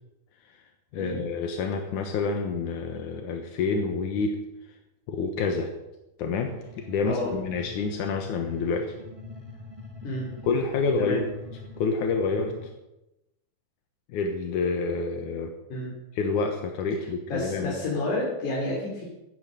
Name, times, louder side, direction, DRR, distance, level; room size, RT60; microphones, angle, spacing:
voice 1, 0.9-4.4 5.1-5.7 6.2-9.0 10.4-11.2 11.8-12.7 14.1-15.5 16.1-17.7, left 4 dB, 70° left, 4 dB, 1.9 m, -28 dB
sound 1, 6.4-12.7, left 3 dB, 40° right, 0.4 m, -44 dB
voice 2, 17.3-19.0, left 2 dB, 45° left, -5 dB, 4.4 m, -30 dB
14.0 x 10.5 x 7.7 m, 0.93 s
omnidirectional pair, 5.2 m